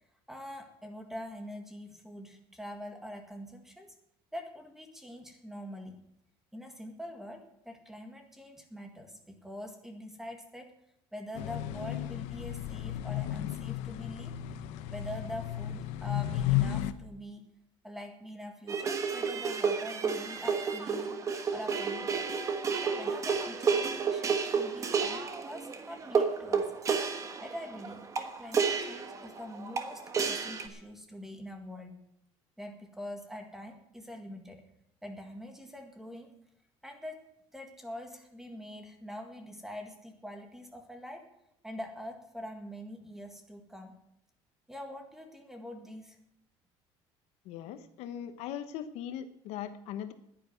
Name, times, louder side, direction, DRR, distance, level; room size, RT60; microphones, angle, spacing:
voice 1, 0.3-4.0 4.3-6.0 6.5-10.7 11.1-14.4 14.9-17.5 17.8-21.2 21.5-22.3 22.8-26.7 27.4-32.0 32.6-34.7 35.0-36.3 36.8-41.3 41.6-44.0 44.7-46.2, equal, 5° right, 5 dB, 1.8 m, -44 dB
sound 1, 11.3-16.9, left 13 dB, 85° left, 0.8 m, -33 dB
sound 2, 18.7-30.7, right 5 dB, 30° right, 1.4 m, -31 dB
voice 2, 47.4-50.1, left 10 dB, 70° left, 10 dB, 1.1 m, -40 dB
10.5 x 10.5 x 7.8 m, 0.78 s
cardioid pair, 155°, 11 cm